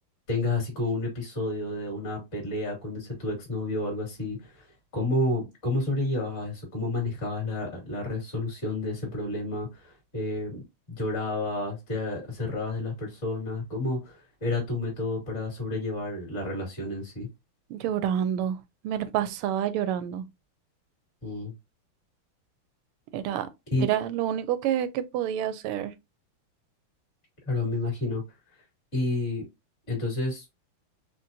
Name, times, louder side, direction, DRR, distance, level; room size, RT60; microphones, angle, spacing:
voice 1, 0.3-4.6 4.9-17.3 21.2-21.5 23.7-23.9 27.4-28.2 28.9-29.4 29.9-30.4, left 2 dB, 35° left, 2.5 m, -30 dB
voice 2, 17.7-18.6 18.8-20.2 23.1-23.5 23.8-25.9, right 10 dB, 85° right, 1.5 m, -28 dB
5.1 x 2.5 x 2.6 m
omnidirectional pair, 2.4 m